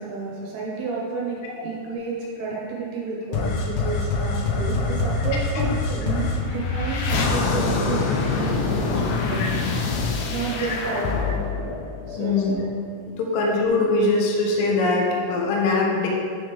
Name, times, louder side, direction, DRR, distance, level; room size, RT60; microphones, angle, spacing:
voice 1, 0.0-9.6 9.9-11.4 12.1-12.7, right 3 dB, 70° right, -4 dB, 2.9 m, -31 dB
sound 1, 3.3-12.7, left 3 dB, 90° left, 3.1 m, -25 dB
voice 2, 12.2-12.5 13.2-16.1, left 3 dB, 70° left, -1 dB, 2.2 m, -21 dB
9.6 x 5.0 x 3.5 m, 2.3 s
omnidirectional pair, 5.2 m